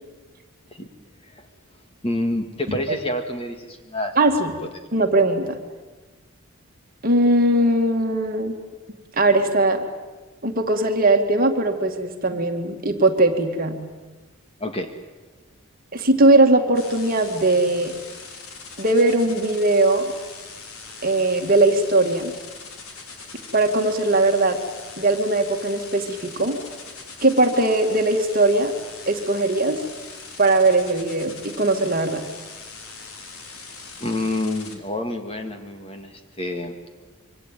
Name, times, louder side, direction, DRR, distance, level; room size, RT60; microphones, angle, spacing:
voice 1, 2.0-4.2 14.6-14.9 34.0-36.8, left 1 dB, 25° left, 6 dB, 2.1 m, -28 dB
voice 2, 4.2-4.5 4.9-5.6 7.0-8.5 9.1-9.8 10.4-13.8 15.9-17.9 18.8-20.1 21.0-22.3 23.5-24.6 25.0-26.6 27.2-28.7 29.1-29.8 30.4-32.2, right 2 dB, 40° right, 4 dB, 2.3 m, -19 dB
sound 1, 16.7-34.8, left 4 dB, 75° left, 3.6 m, -41 dB
26.5 x 24.5 x 9.4 m, 1.2 s
head